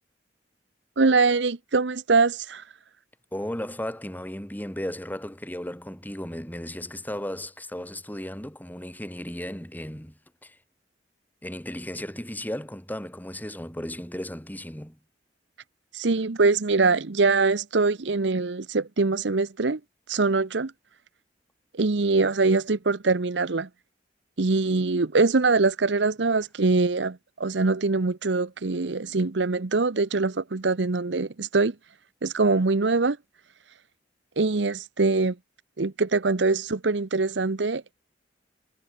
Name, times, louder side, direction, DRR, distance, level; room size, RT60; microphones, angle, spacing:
voice 1, 1.0-2.6 15.9-19.8 20.1-20.7 21.7-23.7 24.4-31.7 32.2-33.2 34.4-35.4 35.8-37.8, right 3 dB, 80° right, 0.9 m, -23 dB
voice 2, 3.3-10.6 11.4-15.0, left 1 dB, 10° left, 7.2 m, -35 dB
head